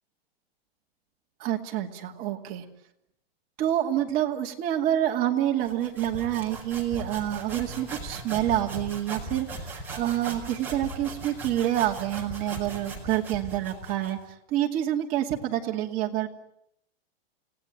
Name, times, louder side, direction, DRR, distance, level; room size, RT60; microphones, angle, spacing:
voice 1, 1.4-2.6 3.6-14.2 14.5-16.3, right 12 dB, 30° right, 2 dB, 2.4 m, -27 dB
sound 1, 5.6-14.2, right 2 dB, 5° right, 4.9 m, -39 dB
29.5 x 18.5 x 9.2 m, 0.79 s
supercardioid pair, 165°, 30 cm